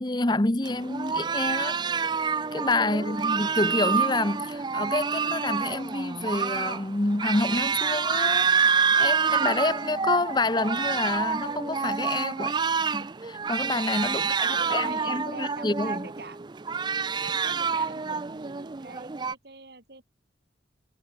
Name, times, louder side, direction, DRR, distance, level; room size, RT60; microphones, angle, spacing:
voice 1, 0.0-1.9 2.5-8.5 9.0-12.5 12.9-16.1, left 2 dB, 25° left, 0.9 m, -28 dB
sound 1, 0.6-19.3, right 6 dB, 25° right, 0.4 m, -27 dB
voice 2, 2.9-3.2 4.8-4.9 12.4-12.5 14.2-16.4 17.2-20.0, right 3 dB, 55° right, 2.8 m, -43 dB
head